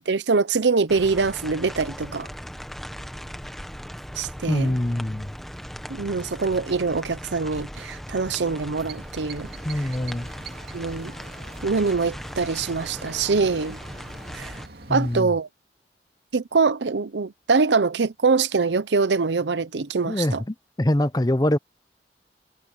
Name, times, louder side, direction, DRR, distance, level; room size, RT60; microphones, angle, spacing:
voice 1, 0.1-2.3 4.2-4.8 5.9-9.5 9.8-9.9 10.7-11.1 11.6-13.8 14.3-14.6 14.9-15.5 16.3-20.4, right 4 dB, 85° right, 0.7 m, -24 dB
sound 1, 0.9-14.7, equal, ahead, 1.1 m, -38 dB
voice 2, 4.5-5.3 9.6-10.3 14.9-15.3 20.0-21.6, left 1 dB, 20° left, 0.8 m, -24 dB
sound 2, 8.7-15.2, right 3 dB, 60° right, 2.4 m, -44 dB
head